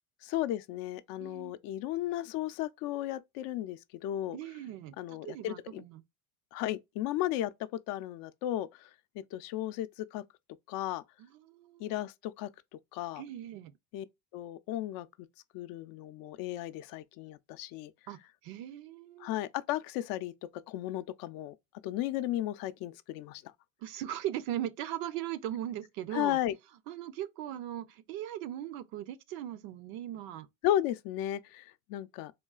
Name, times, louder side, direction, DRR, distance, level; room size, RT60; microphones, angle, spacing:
voice 1, 0.2-4.4 5.0-5.8 6.5-7.5 7.9-8.9 9.3-10.2 10.7-11.0 11.8-12.5 12.9-13.2 13.9-14.1 14.3-15.1 15.5-17.9 19.2-20.3 20.7-21.5 21.8-23.4 26.1-26.5 30.6-32.3, left 13 dB, 65° left, 0.5 m, -34 dB
voice 2, 1.2-1.5 4.3-6.0 11.2-11.9 13.2-13.7 18.1-19.4 23.8-26.4 26.9-30.5, right 12 dB, 70° right, 0.6 m, -39 dB
3.7 x 2.3 x 2.3 m
supercardioid pair, 90°, 38 cm